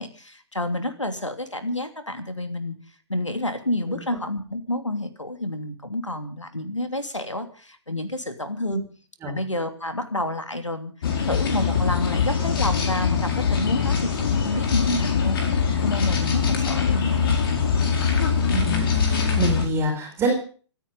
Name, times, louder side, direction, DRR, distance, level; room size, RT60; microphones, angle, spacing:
voice 1, 0.0-2.7 3.1-8.8 9.3-10.9 11.2-17.3, left 1 dB, 90° left, 8 dB, 2.9 m, -29 dB
sound 1, 11.0-19.7, left 6 dB, 50° left, 4.5 m, -22 dB
voice 2, 18.5-20.3, right 2 dB, 15° right, 1 dB, 4.4 m, -26 dB
26.5 x 9.5 x 5.4 m, 0.42 s
figure-of-eight pair, 125°, 15 cm